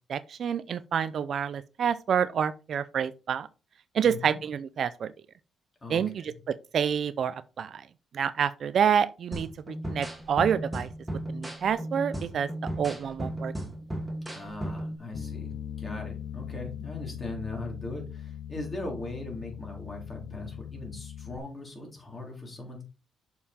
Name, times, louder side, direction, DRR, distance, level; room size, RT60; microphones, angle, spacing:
voice 1, 0.1-3.5 3.9-5.1 5.9-6.1 6.5-7.8 8.1-10.9 11.3-12.5 12.8-13.5, right 8 dB, 55° right, 0.4 m, -28 dB
voice 2, 4.0-4.4 5.8-6.3 14.3-22.8, left 2 dB, 25° left, 3.2 m, -39 dB
sound 1, 9.3-15.0, right 1 dB, 5° right, 1.8 m, -35 dB
Bass guitar, 15.1-21.4, left 9 dB, 50° left, 0.8 m, -40 dB
6.7 x 5.4 x 4.3 m
cardioid pair, 130°, 0 cm